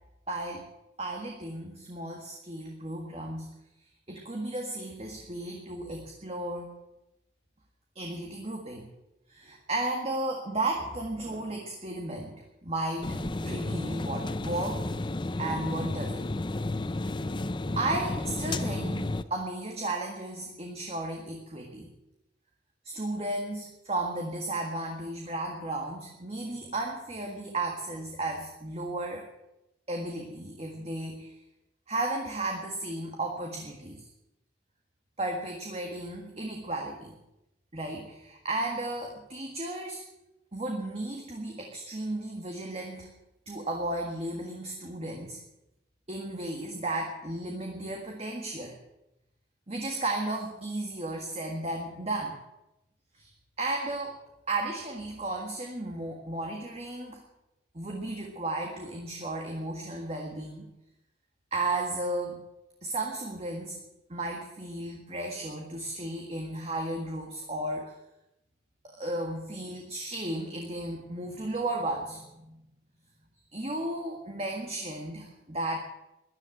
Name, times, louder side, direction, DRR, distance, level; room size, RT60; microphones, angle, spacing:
voice 1, 0.3-0.7 1.0-3.6 4.1-6.7 8.0-8.9 9.3-14.8 15.4-16.3 17.8-21.9 22.8-29.3 29.9-31.4 31.9-34.0 35.2-37.2 37.7-40.0 40.5-43.1 43.5-45.4 46.1-48.8 49.7-52.4 53.1-53.3 53.6-54.2 54.5-57.2 57.7-60.7 61.5-62.4 62.8-63.8 64.1-67.9 68.8-72.6 73.5-75.8, right 2 dB, 30° right, 1 dB, 1.8 m, -34 dB
sound 1, 13.0-19.2, left 2 dB, 25° left, 0.5 m, -32 dB
13.5 x 11.0 x 9.2 m, 0.92 s
head